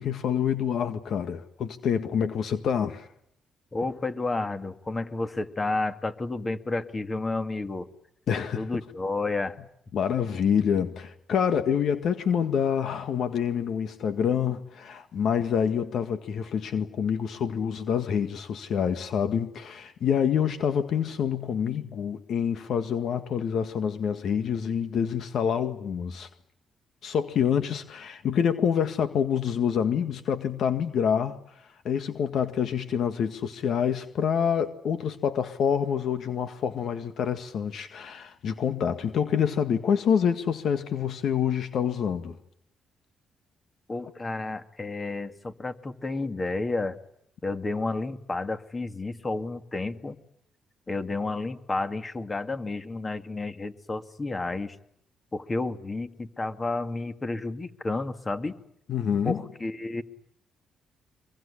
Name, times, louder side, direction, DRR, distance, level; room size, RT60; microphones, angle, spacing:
voice 1, 0.0-3.1 8.3-8.7 9.9-26.3 27.0-31.4 31.8-42.4 58.9-59.4, left 7 dB, 65° left, 1.9 m, -27 dB
voice 2, 3.7-7.9 8.6-9.6 43.9-47.0 47.4-50.2 50.9-54.8 55.3-58.5 59.2-60.0, left 2 dB, 25° left, 2.2 m, -31 dB
24.5 x 23.0 x 10.0 m
cardioid pair, 90°, 0 cm